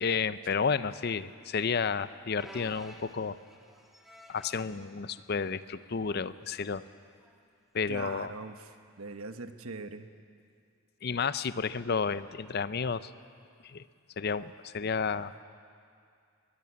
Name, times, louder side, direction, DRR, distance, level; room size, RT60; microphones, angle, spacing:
voice 1, 0.0-3.4 4.3-6.8 7.7-8.3 11.0-13.1 13.6-13.8 14.2-15.4, left 5 dB, 50° left, 14 dB, 0.5 m, -31 dB
sound 1, 2.4-4.9 5.6-5.9 6.2-6.3 7.2-7.4 9.1-9.2, equal, ahead, 1.6 m, -51 dB
voice 2, 7.9-10.1, right 3 dB, 90° right, 8 dB, 1.1 m, -42 dB
21.5 x 14.5 x 9.6 m, 2.3 s
head